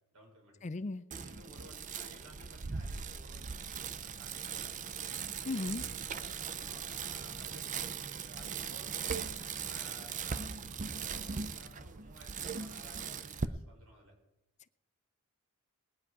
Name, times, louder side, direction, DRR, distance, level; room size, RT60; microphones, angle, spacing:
voice 1, 0.1-0.6 1.1-4.8 5.3-9.2 9.6-14.1, equal, 75° right, 5.9 m, -56 dB
voice 2, 0.6-1.0 5.5-5.8, left 3 dB, 30° left, 0.4 m, -36 dB
Bicycle, 1.1-13.4, right 6 dB, 35° right, 0.5 m, -39 dB
20.0 x 9.6 x 4.8 m
head